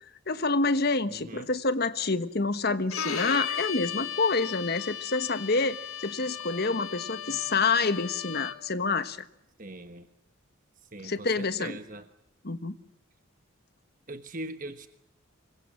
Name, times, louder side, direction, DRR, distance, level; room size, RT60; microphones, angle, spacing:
voice 1, 0.3-9.2 11.0-11.8 12.4-12.8, left 3 dB, 50° left, 12 dB, 1.4 m, -27 dB
voice 2, 1.1-1.5 9.6-10.1 10.9-12.0 14.1-14.9, right 1 dB, 40° right, 9 dB, 1.3 m, -41 dB
Bowed string instrument, 2.9-8.7, left 8 dB, 80° left, 2.8 m, -36 dB
25.5 x 23.0 x 7.5 m, 0.82 s
head